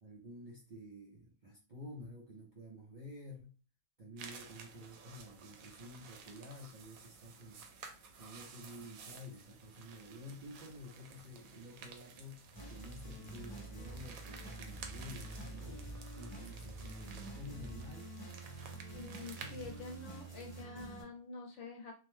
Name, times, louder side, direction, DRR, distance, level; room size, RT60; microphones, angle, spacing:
voice 1, 0.0-3.5 4.0-7.6 8.2-18.2, left 1 dB, 55° right, -2 dB, 0.5 m, -51 dB
sound 1, 4.2-20.6, right 5 dB, 85° right, 1.0 m, -54 dB
sound 2, 12.5-21.0, right 2 dB, 25° left, 0.8 m, -47 dB
voice 2, 18.9-21.9, left 3 dB, 65° left, 1 dB, 1.0 m, -47 dB
2.6 x 2.1 x 3.1 m, 0.36 s
omnidirectional pair, 1.4 m